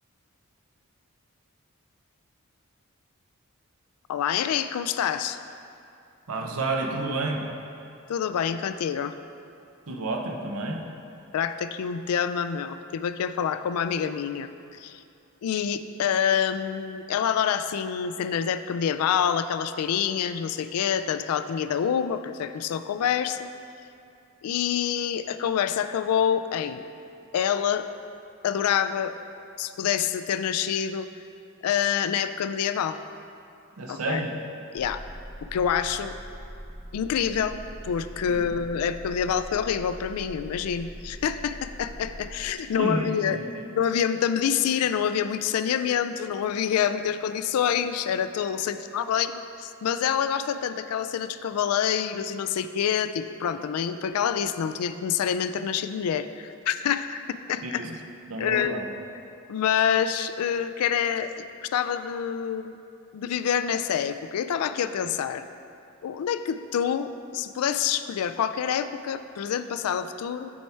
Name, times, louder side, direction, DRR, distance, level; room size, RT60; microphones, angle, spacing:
voice 1, 4.1-5.4 8.1-9.2 11.3-15.0 15.4-23.5 24.4-26.8 27.3-27.9 28.4-29.2 29.6-31.2 31.6-33.0 33.9-34.2 34.7-35.0 35.5-36.2 36.9-43.4 43.7-57.8 58.4-58.8 59.5-62.8 63.1-65.5 66.0-70.5, left 8 dB, 90° left, 11 dB, 0.3 m, -27 dB
voice 2, 6.3-7.4 9.9-10.8 33.8-34.3 38.3-38.6 42.7-43.4 57.6-57.9 58.3-58.8, right 2 dB, 80° right, 1 dB, 0.7 m, -30 dB
sound 1, 34.8-42.5, equal, 15° right, 0.5 m, -42 dB
7.2 x 4.6 x 4.4 m, 2.6 s
head